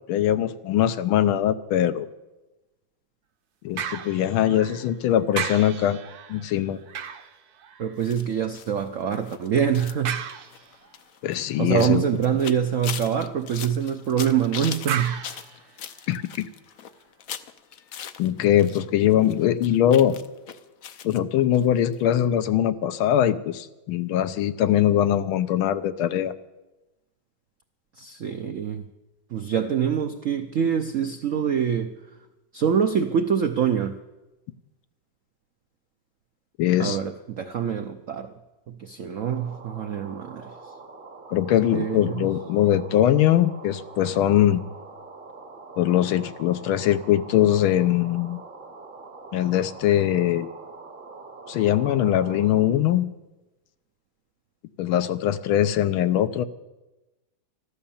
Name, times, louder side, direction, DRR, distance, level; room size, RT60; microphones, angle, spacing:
voice 1, 0.1-2.1 3.6-6.0 6.3-6.8 11.2-12.2 16.1-16.5 18.2-20.2 21.0-26.3 36.6-37.0 41.3-44.6 45.8-48.4 49.3-50.5 51.5-53.1 54.8-56.4, left 11 dB, 90° left, 12 dB, 1.6 m, -22 dB
sound 1, 3.8-5.0 5.3-8.2 10.0-11.0 14.9-16.3 16.9-17.0, right 8 dB, 60° right, 1.2 m, -35 dB
voice 2, 7.8-10.2 11.6-15.2 28.0-28.8 29.3-31.9 32.5-34.0 36.8-38.3 38.8-40.4 41.7-42.2, right 8 dB, 75° right, 7 dB, 0.7 m, -25 dB
sound 2, 8.0-18.8 19.1-21.2 21.5-21.7 21.9-22.0, left 9 dB, 75° left, 0.7 m, -40 dB
sound 3, 39.2-52.7, right 3 dB, 40° right, 0.8 m, -44 dB
14.0 x 12.0 x 7.1 m, 1.1 s
omnidirectional pair, 2.2 m